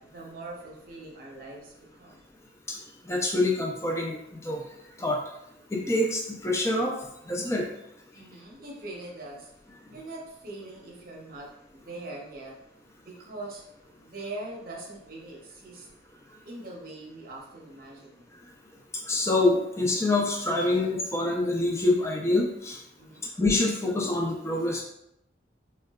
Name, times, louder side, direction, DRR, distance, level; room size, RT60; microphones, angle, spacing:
voice 1, 0.0-2.2 8.1-9.5 9.9-12.6 13.0-13.6 14.0-15.9 16.4-18.3 23.0-23.3, right 2 dB, 50° right, -2 dB, 0.7 m, -42 dB
voice 2, 3.0-4.6 5.0-5.2 5.7-6.9 7.3-7.7 19.1-22.8 23.4-24.8, left 2 dB, 15° left, -1 dB, 0.4 m, -26 dB
3.7 x 2.2 x 2.3 m, 0.79 s
head